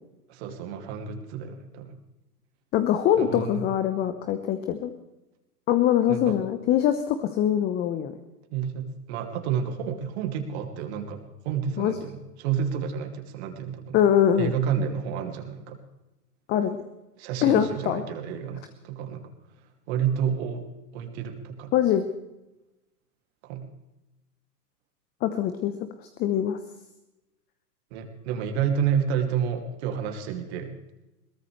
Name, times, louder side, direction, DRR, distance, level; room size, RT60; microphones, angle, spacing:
voice 1, 0.3-1.9 3.2-3.7 6.1-6.4 8.5-11.2 11.4-14.0 14.4-15.8 17.2-19.2 19.9-20.7 20.9-21.7 23.4-23.7 27.9-30.7, right 8 dB, 40° right, 5 dB, 2.6 m, -30 dB
voice 2, 2.7-4.9 5.7-8.1 11.8-12.0 13.9-14.5 16.5-16.8 17.4-18.0 21.7-22.1 25.2-25.7 26.2-26.6, left 10 dB, 20° left, 9 dB, 0.9 m, -23 dB
21.5 x 18.5 x 3.3 m, 0.96 s
hypercardioid pair, 120°, 48 cm